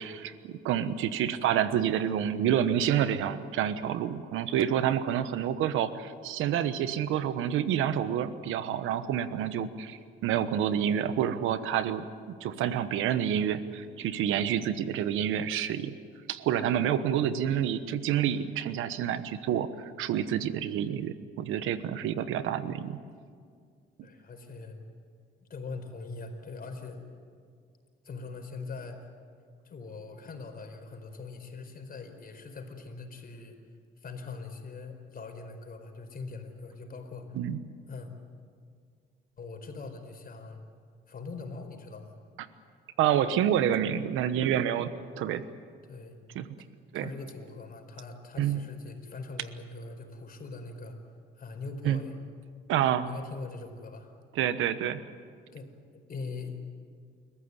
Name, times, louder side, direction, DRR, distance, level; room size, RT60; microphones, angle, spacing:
voice 1, 0.0-12.1 12.4-15.9 16.3-23.0 37.3-37.6 43.0-44.9 45.2-45.4 46.3-46.5 46.9-47.1 48.4-48.6 51.8-52.0 52.7-53.1 54.3-55.0, right 10 dB, 90° right, 12 dB, 1.1 m, -28 dB
voice 2, 24.0-24.8 25.4-27.0 28.0-29.1 29.6-33.6 34.0-37.4 37.9-38.1 39.4-40.6 41.1-42.2 45.9-46.2 46.9-51.0 51.3-52.1 52.8-54.1 55.5-56.5, left 3 dB, 50° left, 5 dB, 4.6 m, -42 dB
29.0 x 14.5 x 9.7 m, 2.1 s
cardioid pair, 90°, 20 cm